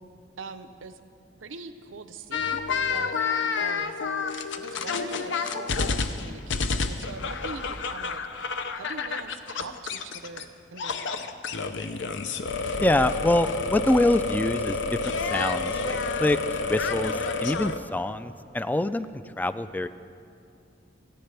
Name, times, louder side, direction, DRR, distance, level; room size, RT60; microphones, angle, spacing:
voice 1, 0.4-1.0 1.4-3.1 3.6-4.0 4.6-11.4, right 4 dB, 90° right, 10 dB, 0.7 m, -42 dB
sound 1, 2.3-10.4 10.8-17.8, left 4 dB, 65° left, 0.6 m, -29 dB
voice 2, 12.8-19.9, left 1 dB, 10° left, 13 dB, 0.3 m, -26 dB
28.5 x 9.7 x 3.4 m, 2.6 s
head